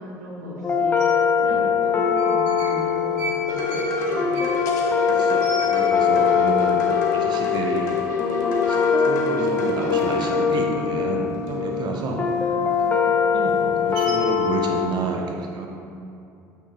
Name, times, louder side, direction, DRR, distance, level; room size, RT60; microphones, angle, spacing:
voice 1, 0.0-4.5 12.4-13.1 13.5-13.8, equal, 90° right, -4 dB, 1.0 m, -37 dB
sound 1, 0.6-14.9, left 7 dB, 25° left, 0.7 m, -22 dB
sound 2, 1.0-1.1 2.0-2.8 3.1-6.3 6.6-6.7 7.0-7.5 7.9-8.1 8.4-9.2 9.4-11.8 12.2-14.5, right 2 dB, 70° right, 1.2 m, -37 dB
sound 3, 3.5-10.4, left 1 dB, 85° left, 0.7 m, -28 dB
voice 2, 4.9-8.0 8.7-12.3 13.3-15.7, right 3 dB, 50° right, 2 dB, 0.7 m, -30 dB
8.5 x 3.4 x 3.3 m, 2.5 s
hypercardioid pair, 60°, 9 cm